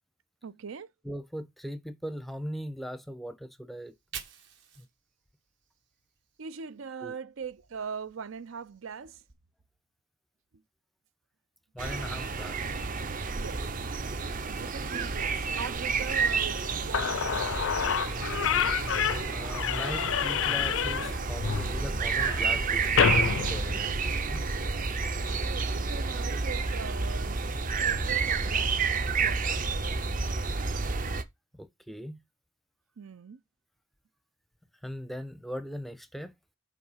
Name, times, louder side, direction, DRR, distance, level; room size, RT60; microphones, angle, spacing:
voice 1, 0.4-0.9 6.4-9.2 13.3-13.6 13.9-14.0 14.6-17.4 25.3-27.4 27.8-28.8 29.2-29.6 33.0-33.4, right 6 dB, 80° right, 0.5 m, -41 dB
voice 2, 1.0-3.9 4.8-4.9 7.0-7.1 11.7-12.6 14.5-15.1 19.3-24.5 31.6-32.2 34.8-36.3, equal, ahead, 0.6 m, -40 dB
Fire, 3.7-6.9 7.3-9.3, right 8 dB, 60° right, 1.5 m, -50 dB
sound 1, 11.8-31.2, right 4 dB, 40° right, 0.7 m, -30 dB
Slam / Squeak, 16.6-16.7 16.9-24.4, left 8 dB, 70° left, 0.4 m, -29 dB
5.8 x 4.4 x 5.7 m
head